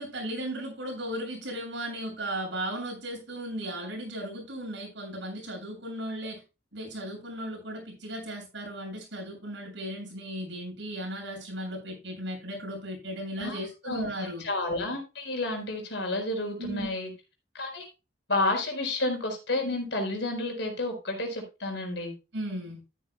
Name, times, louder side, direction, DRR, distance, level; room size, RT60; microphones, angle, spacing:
voice 1, 0.0-6.4 6.7-14.4 16.6-17.0 22.3-22.8, right 1 dB, 75° right, 7.4 m, -36 dB
voice 2, 13.8-17.1 17.5-17.9 18.3-22.1, left 2 dB, 70° left, 4.5 m, -30 dB
13.0 x 10.0 x 2.3 m
head